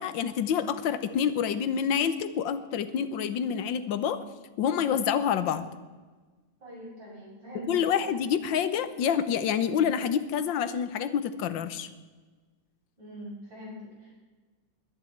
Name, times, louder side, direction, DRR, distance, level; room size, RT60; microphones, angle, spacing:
voice 1, 0.0-4.2 4.6-5.7 7.7-11.9, left 8 dB, 85° left, 12 dB, 1.6 m, -27 dB
voice 2, 6.6-8.1 13.0-14.2, right 1 dB, 85° right, -5 dB, 6.6 m, -42 dB
21.5 x 10.5 x 4.6 m, 1.4 s
omnidirectional pair, 2.0 m